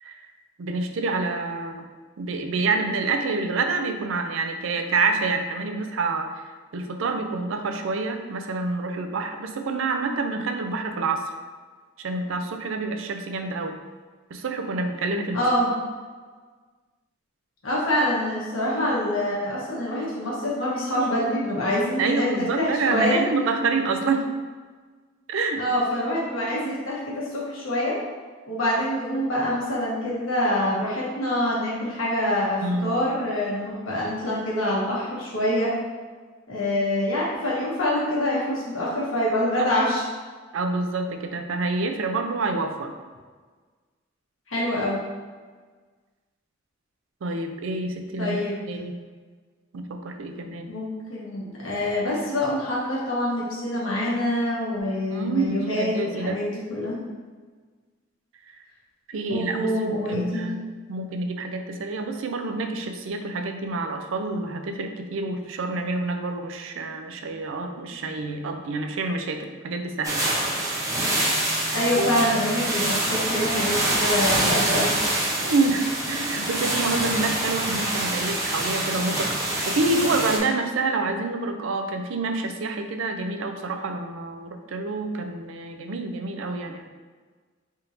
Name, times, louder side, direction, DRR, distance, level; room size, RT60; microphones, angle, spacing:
voice 1, 0.6-1.9 2.2-11.2 12.0-13.8 14.3-15.4 22.0-24.3 25.3-25.6 32.6-32.9 39.6-39.7 40.5-42.9 47.2-48.4 48.7-49.0 49.7-50.7 55.1-56.4 59.1-60.6 60.9-70.2 71.6-72.1 75.4-86.9, right 3 dB, 75° right, 5 dB, 0.4 m, -27 dB
voice 2, 15.3-15.7 17.6-23.2 25.6-28.0 28.5-35.8 36.5-40.1 44.5-45.0 48.2-48.6 50.7-57.0 59.3-60.5 71.7-74.9, left 1 dB, 90° left, -5 dB, 1.3 m, -25 dB
sound 1, 70.0-80.4, right 1 dB, 15° right, 0.6 m, -25 dB
3.5 x 2.6 x 4.3 m, 1.4 s
head